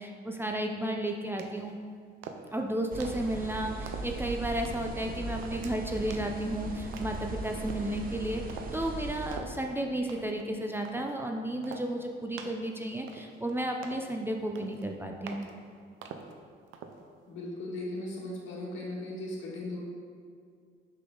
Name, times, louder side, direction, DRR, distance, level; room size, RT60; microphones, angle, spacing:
voice 1, 0.0-1.8 2.5-15.5, right 1 dB, 10° right, 2 dB, 0.5 m, -33 dB
sound 1, 1.4-1.7 2.2-2.6 3.0-3.3 3.9-4.2 4.6-4.9 5.4-5.7 6.1-6.4 6.9-7.3 7.7-7.9 8.5-8.8 9.3-9.6 10.1-10.4 10.8-11.1 11.6-11.9 12.4-12.7 13.1-13.5 13.8-14.1 14.6-14.9 15.3-15.5 16.0-16.4 16.7-17.0, right 6 dB, 90° right, 0.6 m, -44 dB
sound 2, 2.9-9.4, right 2 dB, 45° right, 0.9 m, -38 dB
voice 2, 17.3-19.8, left 1 dB, 75° left, -4 dB, 1.8 m, -37 dB
6.7 x 5.5 x 3.9 m, 2.2 s
cardioid pair, 90°, 20 cm